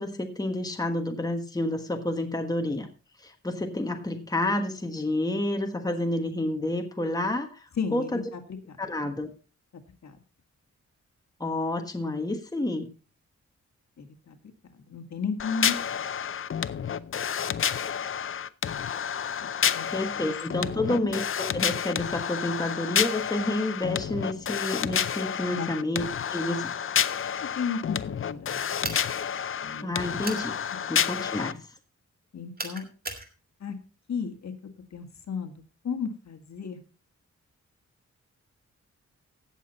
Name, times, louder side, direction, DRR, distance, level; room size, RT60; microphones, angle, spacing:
voice 1, 0.0-2.9 3.2-7.6 7.9-8.2 8.8-9.3 11.4-12.9 19.9-26.7 29.8-30.6 30.9-31.6, left 1 dB, 15° left, 4 dB, 1.3 m, -29 dB
voice 2, 7.8-8.8 10.0-10.2 14.0-14.4 14.7-15.9 19.4-19.9 20.2-20.3 20.6-21.1 25.5-25.7 27.4-28.0 28.3-28.7 29.6-29.9 30.7-30.9 32.3-32.9 33.6-33.8 34.1-34.5 34.9-36.8, left 6 dB, 65° left, 6 dB, 1.8 m, -34 dB
sound 1, 15.4-31.5, left 8 dB, 45° left, 0.5 m, -30 dB
sound 2, 28.8-29.1 30.2-30.5 32.6-33.3, right 2 dB, 30° right, 2.2 m, -35 dB
16.5 x 6.8 x 4.1 m, 0.36 s
wide cardioid pair, 135°, 29 cm